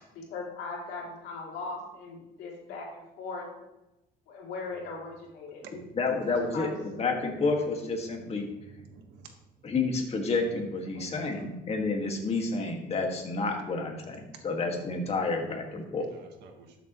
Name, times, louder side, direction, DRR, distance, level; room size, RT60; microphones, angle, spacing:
voice 1, 0.3-3.5 4.3-5.6 6.3-6.8, left 3 dB, 80° left, -2 dB, 3.1 m, -39 dB
voice 2, 6.0-8.4 9.6-16.1, left 3 dB, 40° left, 2 dB, 2.0 m, -30 dB
voice 3, 8.0-9.3 10.9-11.6 14.2-14.4 16.1-16.8, right 5 dB, 85° right, 4 dB, 1.5 m, -51 dB
13.0 x 7.1 x 3.1 m, 0.95 s
cardioid pair, 110°, 17 cm